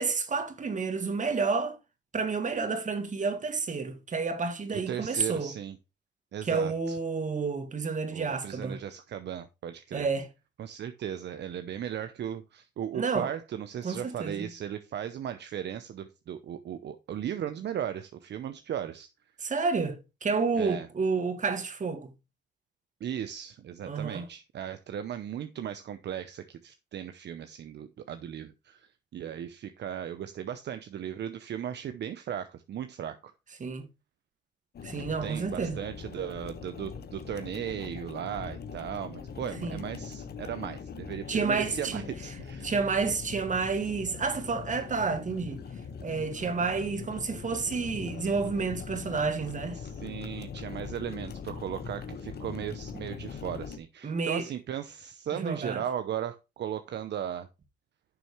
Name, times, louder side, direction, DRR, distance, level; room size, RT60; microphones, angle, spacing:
voice 1, 0.0-1.8 2.1-5.5 6.4-8.8 9.9-10.3 12.9-13.3 13.8-14.5 19.4-22.1 23.9-24.3 33.6-33.9 34.8-35.8 39.6-39.8 41.3-42.0 42.6-45.6 46.0-49.8 54.0-54.5 55.3-55.8, right 4 dB, 40° right, 2.1 m, -30 dB
voice 2, 4.7-5.8 6.3-7.0 8.1-10.1 10.6-19.1 20.6-20.9 23.0-28.8 29.1-33.3 35.2-42.7 49.7-57.5, right 9 dB, 60° right, 0.8 m, -37 dB
sound 1, 34.7-53.8, left 6 dB, 55° left, 1.4 m, -41 dB
11.0 x 6.3 x 3.2 m
cardioid pair, 90°, 20 cm